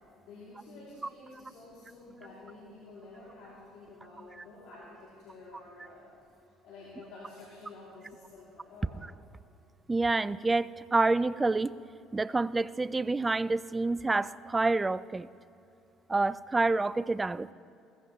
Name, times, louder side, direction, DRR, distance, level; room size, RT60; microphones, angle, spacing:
voice 1, 0.2-6.1 6.6-9.0, left 2 dB, 70° left, -7 dB, 2.9 m, -50 dB
voice 2, 9.9-11.7 12.1-15.3 16.1-17.5, right 3 dB, 20° right, 18 dB, 0.3 m, -28 dB
16.5 x 15.0 x 3.2 m, 2.6 s
supercardioid pair, 75°, 0 cm